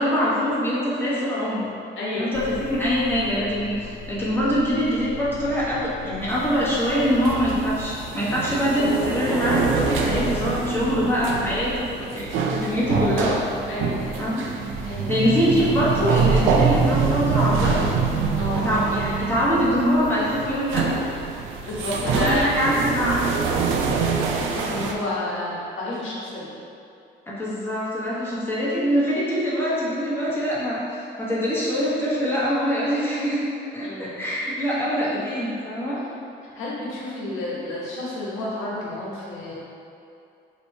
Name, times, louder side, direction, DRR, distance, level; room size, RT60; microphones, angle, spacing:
voice 1, 0.0-1.7 2.2-13.3 14.2-14.4 15.0-17.8 18.5-20.9 22.2-23.2 27.3-33.4 33.7-36.0, equal, 10° left, -9 dB, 1.1 m, -24 dB
voice 2, 2.0-2.3 8.4-8.5 13.7-14.3 14.8-15.2 18.4-18.7 21.6-22.5 23.7-23.8 24.5-26.5 33.8-34.1 36.6-39.6, left 1 dB, 80° left, -6 dB, 1.0 m, -30 dB
sound 1, 2.3-7.8, left 3 dB, 50° left, 0.4 m, -39 dB
sound 2, 6.3-24.9, right 5 dB, 85° right, 0.4 m, -25 dB
2.9 x 2.6 x 4.4 m, 2.6 s
cardioid pair, 90°, 20 cm